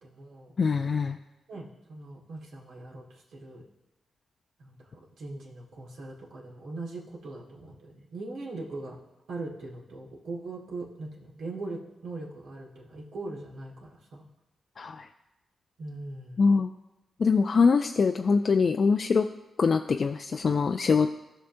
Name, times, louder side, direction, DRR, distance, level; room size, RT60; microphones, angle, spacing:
voice 1, 0.0-0.5 1.5-3.6 4.6-9.0 9.3-14.2 15.8-16.4, right 2 dB, 75° right, -2 dB, 1.7 m, -40 dB
voice 2, 0.6-1.2 14.8-15.1 16.4-16.7 17.2-19.3 19.6-21.1, left 5 dB, 60° left, 6 dB, 0.3 m, -23 dB
15.0 x 5.5 x 2.6 m, 0.98 s
supercardioid pair, 40°, 0 cm